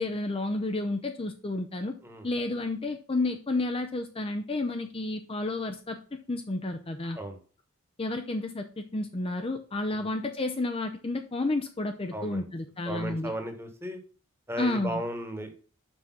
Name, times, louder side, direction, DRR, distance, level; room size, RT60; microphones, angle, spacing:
voice 1, 0.0-2.0 2.2-7.2 8.0-13.3 14.6-15.0, left 2 dB, 25° left, 6 dB, 0.6 m, -31 dB
voice 2, 12.1-12.5 12.8-14.0 14.5-15.5, equal, 10° right, 6 dB, 1.3 m, -35 dB
6.1 x 5.1 x 5.8 m, 0.39 s
head